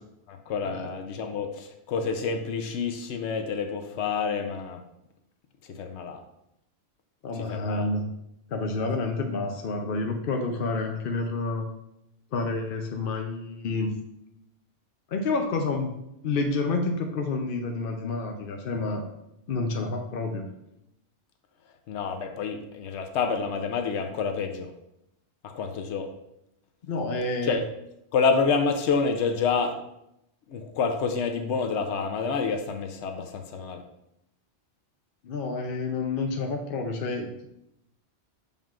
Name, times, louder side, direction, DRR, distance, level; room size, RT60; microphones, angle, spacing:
voice 1, 0.3-4.8 5.6-6.2 7.3-7.9 21.9-24.7 25.4-26.1 27.4-27.6 28.1-29.8 30.5-33.8, left 5 dB, 90° left, 5 dB, 0.9 m, -28 dB
voice 2, 7.2-8.1 8.5-11.6 12.3-13.9 15.1-15.9 16.2-19.0 19.5-20.5 26.8-27.6 35.2-37.5, left 3 dB, 60° left, 3 dB, 0.8 m, -29 dB
7.2 x 5.4 x 2.4 m, 0.82 s
omnidirectional pair, 1.1 m